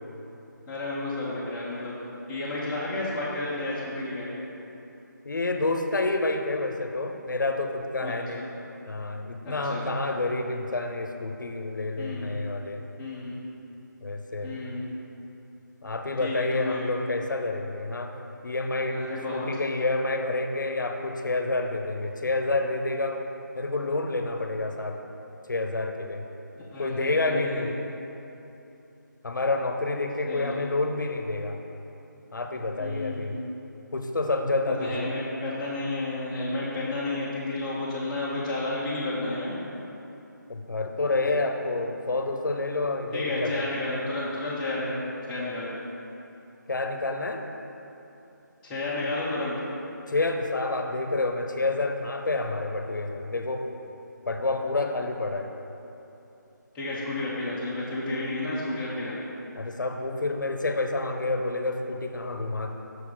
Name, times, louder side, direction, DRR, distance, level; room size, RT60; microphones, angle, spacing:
voice 1, 0.7-1.9 2.3-4.3 8.0-8.4 9.4-9.8 12.0-12.3 13.0-13.4 14.4-14.9 16.2-16.9 18.9-19.5 26.7-27.6 30.3-30.5 32.8-33.4 34.7-39.5 43.1-45.7 48.6-49.6 56.7-59.2, left 2 dB, 5° left, -8 dB, 0.6 m, -31 dB
voice 2, 5.2-8.5 8.9-12.8 14.0-14.5 15.8-18.1 18.4-23.2 23.5-25.0 25.5-26.2 26.8-27.8 29.2-31.6 32.3-33.4 33.9-35.1 40.5-43.7 46.7-47.4 50.1-53.7 54.3-55.5 59.6-62.7, left 2 dB, 70° left, 5 dB, 0.7 m, -28 dB
6.3 x 4.6 x 5.0 m, 2.9 s
figure-of-eight pair, 165°, 11 cm